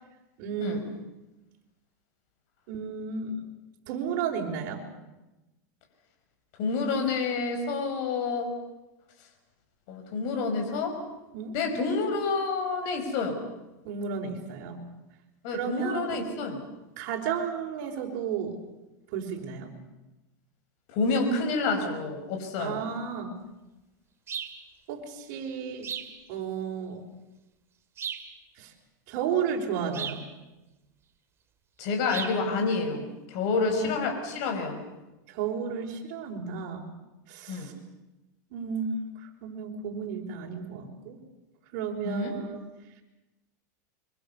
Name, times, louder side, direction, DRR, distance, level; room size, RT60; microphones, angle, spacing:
voice 1, 0.4-0.8 2.7-3.4 3.9-4.8 11.3-11.6 13.8-14.8 15.5-16.3 17.0-18.6 19.1-19.7 22.6-23.4 24.9-25.9 26.3-27.0 28.6-28.7 29.1-30.2 33.5-33.9 35.3-36.9 37.3-37.7 38.5-41.2 41.7-42.6, right 6 dB, 55° right, -1 dB, 4.9 m, -33 dB
voice 2, 6.6-8.5 9.9-11.0 11.5-13.4 15.4-16.6 20.9-22.9 31.8-34.8 37.5-37.7 42.0-42.3, left 4 dB, 55° left, 4 dB, 5.5 m, -28 dB
sound 1, 24.3-24.6 25.8-26.2 28.0-28.3 29.9-30.3 32.1-32.4, right 8 dB, 25° right, 2.2 m, -35 dB
25.0 x 24.0 x 7.0 m, 1.0 s
supercardioid pair, 135°, 10 cm